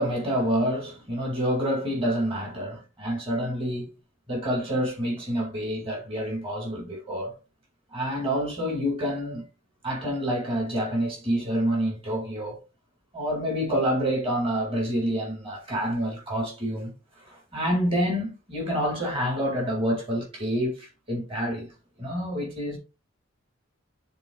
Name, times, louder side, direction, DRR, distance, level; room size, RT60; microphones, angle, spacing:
voice 1, 0.0-3.9 4.3-7.3 7.9-9.4 9.8-12.6 13.1-16.9 17.2-21.7 22.0-22.8, equal, 30° right, 2.0 m, -28 dB
10.5 x 3.9 x 2.4 m
head